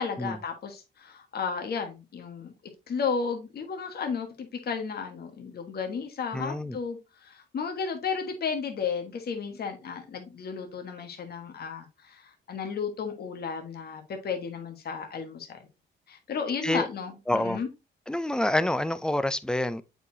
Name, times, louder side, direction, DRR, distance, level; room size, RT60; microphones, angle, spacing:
voice 1, 0.0-2.5 2.9-15.6 16.1-17.7, left 6 dB, 50° left, 1.5 m, -33 dB
voice 2, 6.3-6.8 16.6-16.9 17.3-17.6 18.1-19.8, left 1 dB, 5° left, 0.5 m, -27 dB
7.8 x 4.8 x 2.7 m
cardioid pair, 90°, 20 cm